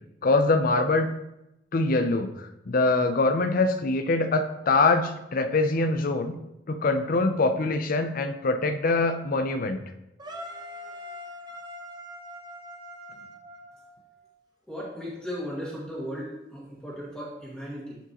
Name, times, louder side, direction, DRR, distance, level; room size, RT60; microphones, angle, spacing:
voice 1, 0.2-1.1 1.7-6.3 6.7-9.8, left 3 dB, 50° left, 9 dB, 0.5 m, -24 dB
sound 1, 10.2-14.3, equal, 25° right, 0.8 m, -42 dB
voice 2, 14.7-18.0, equal, 5° left, -6 dB, 1.9 m, -36 dB
10.5 x 4.8 x 2.9 m, 0.90 s
head